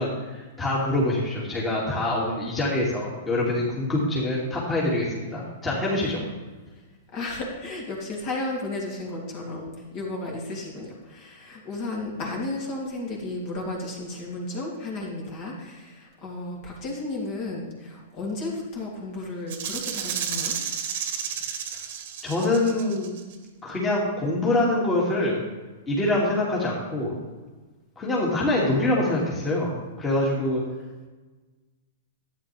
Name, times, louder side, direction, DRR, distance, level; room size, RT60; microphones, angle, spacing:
voice 1, 0.0-6.2 22.2-23.1 23.6-25.4 25.9-27.1 28.0-29.7 30.0-30.6, left 1 dB, 15° left, -6 dB, 2.5 m, -25 dB
voice 2, 7.1-20.5, left 2 dB, 40° left, -2 dB, 2.8 m, -33 dB
Rattle (instrument), 19.5-23.3, right 8 dB, 60° right, 1.4 m, -32 dB
11.5 x 9.2 x 3.5 m, 1.3 s
hypercardioid pair, 135°, 0 cm